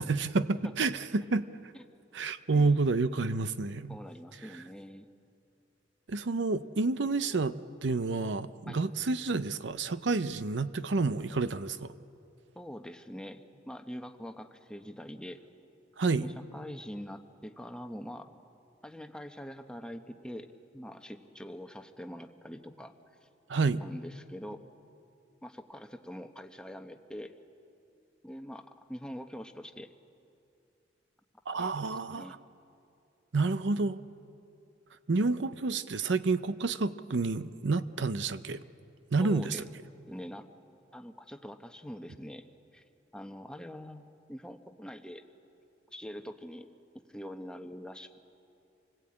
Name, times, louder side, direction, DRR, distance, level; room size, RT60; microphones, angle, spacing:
voice 1, 0.0-1.5 2.1-4.0 6.1-11.9 16.0-16.3 23.5-23.8 31.5-32.4 33.3-34.0 35.1-38.6 39.1-39.6, right 3 dB, 70° right, 13 dB, 0.7 m, -29 dB
voice 2, 3.9-5.1 8.7-8.8 12.5-15.4 16.2-18.3 18.8-22.9 23.2-23.3 23.8-24.7 25.4-27.3 28.2-29.9 31.5-32.3 39.2-39.6 40.1-40.5 40.9-42.5 42.7-42.8 43.1-45.2 45.9-46.7 47.1-48.2, equal, 5° left, 6 dB, 1.0 m, -44 dB
27.0 x 20.0 x 8.7 m, 2.6 s
head